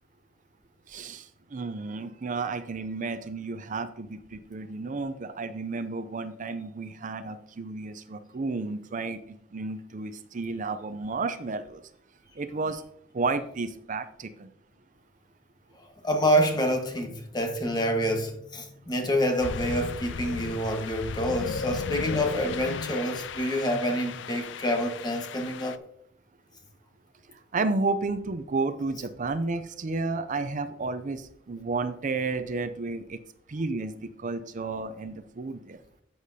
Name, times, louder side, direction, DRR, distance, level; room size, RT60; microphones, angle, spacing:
voice 1, 0.9-11.8 12.4-12.8 13.1-14.5 27.5-33.2 33.5-35.8, right 3 dB, 45° right, 0.5 m, -32 dB
voice 2, 16.0-25.8, equal, 20° left, 1.3 m, -27 dB
sound 1, 19.4-25.8, left 5 dB, 70° left, 0.5 m, -35 dB
11.0 x 8.3 x 2.8 m
head